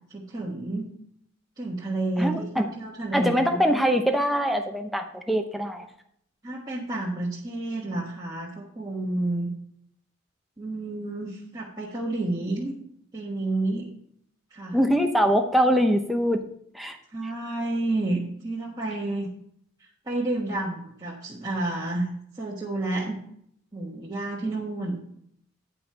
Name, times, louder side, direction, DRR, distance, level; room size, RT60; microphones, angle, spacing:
voice 1, 0.1-0.9 1.6-3.6 6.4-9.5 10.6-12.7 13.1-13.9 14.5-14.8 17.1-19.3 20.1-22.1 22.4-23.2 23.7-25.0, right 2 dB, 20° right, -7 dB, 1.4 m, -30 dB
voice 2, 2.2-2.7 3.1-5.9 14.7-16.4 16.7-17.0, equal, ahead, 4 dB, 0.7 m, -23 dB
9.6 x 5.6 x 5.6 m, 0.70 s
head